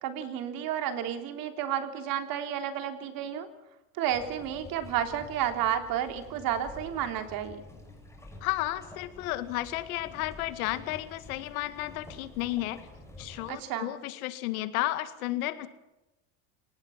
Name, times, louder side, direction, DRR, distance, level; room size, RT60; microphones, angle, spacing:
voice 1, 0.0-3.5 4.0-7.6 13.5-13.9, right 10 dB, 55° right, 7 dB, 3.5 m, -31 dB
sound 1, 4.1-13.5, left 2 dB, 5° left, 6.8 m, -49 dB
voice 2, 8.4-12.8 13.2-15.7, left 16 dB, 80° left, 12 dB, 2.1 m, -33 dB
28.5 x 18.5 x 5.8 m, 0.98 s
supercardioid pair, 120°, 41 cm